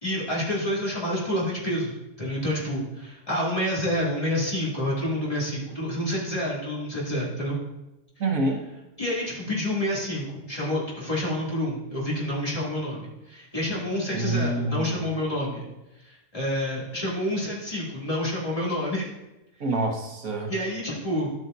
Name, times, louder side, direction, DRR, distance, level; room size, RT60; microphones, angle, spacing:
voice 1, 0.0-7.6 9.0-15.6 16.0-19.1 20.5-21.3, left 1 dB, 25° left, -7 dB, 2.7 m, -28 dB
voice 2, 8.2-8.6 14.1-15.0 19.6-20.5, right 2 dB, 80° right, 1 dB, 1.6 m, -26 dB
11.5 x 7.9 x 2.7 m, 1.0 s
omnidirectional pair, 1.4 m